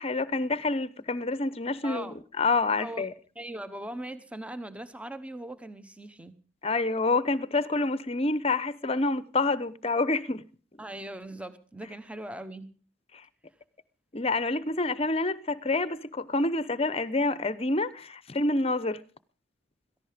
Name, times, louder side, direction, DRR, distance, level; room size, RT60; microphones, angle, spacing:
voice 1, 0.0-3.1 6.6-10.4 14.1-19.0, left 3 dB, 30° left, 0.8 m, -27 dB
voice 2, 1.8-2.1 2.8-3.1 3.3-6.3 10.8-12.7, right 1 dB, 5° right, 0.9 m, -40 dB
17.0 x 14.5 x 5.1 m
head